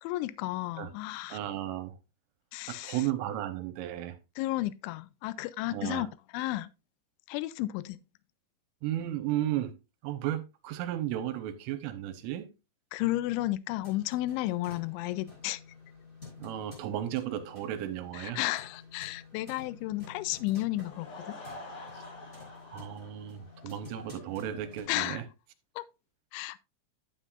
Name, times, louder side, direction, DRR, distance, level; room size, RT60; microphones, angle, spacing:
voice 1, 0.0-1.4 2.5-3.1 4.4-6.1 6.3-6.7 7.3-8.0 12.9-15.6 18.1-21.4 24.9-25.2 25.8-25.9 26.3-26.6, left 17 dB, 85° left, 2.6 m, -33 dB
voice 2, 1.3-1.9 2.7-4.2 5.7-6.1 8.8-9.8 10.0-12.5 16.4-18.4 21.9-22.0 22.7-25.2, right 12 dB, 80° right, 3.3 m, -34 dB
sound 1, 13.7-24.8, left 4 dB, 10° left, 4.7 m, -51 dB
Laughter / Crowd, 20.7-25.1, left 2 dB, 60° left, 7.3 m, -48 dB
12.0 x 7.5 x 2.5 m
omnidirectional pair, 5.9 m